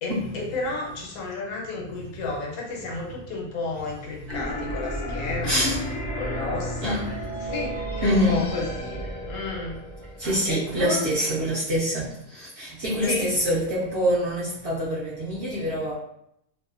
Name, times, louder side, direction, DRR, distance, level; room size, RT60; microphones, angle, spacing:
voice 1, 0.0-5.7 6.2-7.0 7.4-9.0 9.3-9.8 10.5-11.0 13.0-13.3, left 3 dB, 80° left, -1 dB, 1.1 m, -32 dB
sound 1, 4.3-11.1, equal, 60° left, 0.5 m, -33 dB
voice 2, 5.4-6.0 6.8-7.2 8.0-8.5 10.2-15.9, equal, 60° right, -7 dB, 0.7 m, -25 dB
2.7 x 2.1 x 2.4 m, 0.76 s
omnidirectional pair, 1.6 m